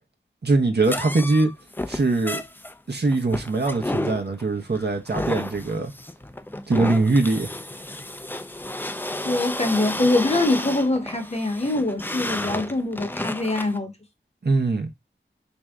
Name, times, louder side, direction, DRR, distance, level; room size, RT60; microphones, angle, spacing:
voice 1, 0.4-1.5 1.9-2.4 2.9-5.9 6.7-7.5 14.4-14.9, right 3 dB, 55° right, 0.9 m, -22 dB
sound 1, 0.8-13.8, left 1 dB, 10° left, 0.4 m, -32 dB
voice 2, 9.2-13.9, left 2 dB, 35° left, 0.9 m, -23 dB
3.2 x 2.7 x 3.5 m
wide cardioid pair, 40°, 20 cm